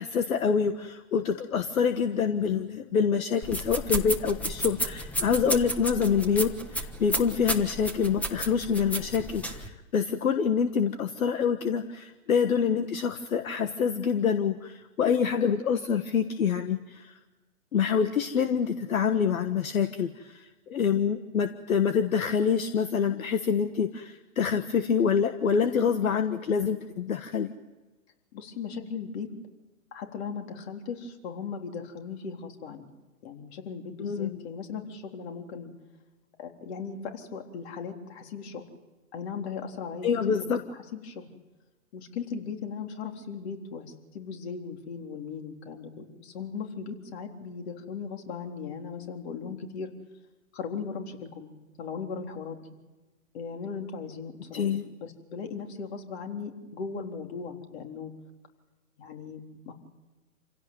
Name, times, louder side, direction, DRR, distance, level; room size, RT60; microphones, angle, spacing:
voice 1, 0.0-17.2 17.7-27.5 34.0-34.3 40.0-40.6 54.5-54.9, left 6 dB, 75° left, 9 dB, 1.5 m, -26 dB
sound 1, 3.4-9.7, equal, 5° left, 1.2 m, -33 dB
voice 2, 28.3-29.3 29.9-32.9 33.2-35.7 36.4-38.6 39.1-40.6 40.9-41.3 41.9-49.9 50.5-51.5 51.8-52.6 53.3-54.6 55.0-58.1 59.0-59.7, left 5 dB, 50° left, 4 dB, 3.8 m, -38 dB
27.5 x 16.5 x 9.3 m, 1.2 s
hypercardioid pair, 130°, 42 cm